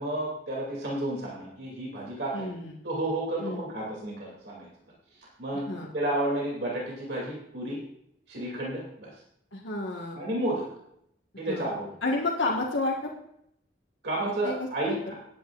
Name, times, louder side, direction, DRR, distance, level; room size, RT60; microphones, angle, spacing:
voice 1, 0.0-2.5 2.8-4.7 5.1-5.7 5.9-7.8 8.3-9.1 10.1-10.6 11.4-11.9 14.0-15.1, right 1 dB, 65° right, -4 dB, 2.6 m, -31 dB
voice 2, 2.3-2.7 3.4-3.6 5.7-5.9 9.5-10.2 11.5-11.7 12.0-13.1 14.4-14.5 14.9-15.0, left 2 dB, 90° left, -1 dB, 1.4 m, -30 dB
18.0 x 9.7 x 2.4 m, 0.75 s
head